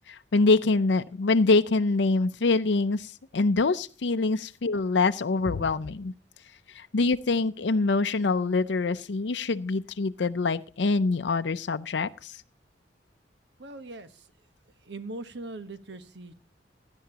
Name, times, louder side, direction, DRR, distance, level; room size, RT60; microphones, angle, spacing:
voice 1, 0.1-6.1 6.7-12.4, left 3 dB, 75° left, 10 dB, 0.6 m, -25 dB
voice 2, 13.6-14.3 14.8-16.3, right 2 dB, 70° right, 11 dB, 1.3 m, -40 dB
17.0 x 11.5 x 2.9 m, 0.37 s
head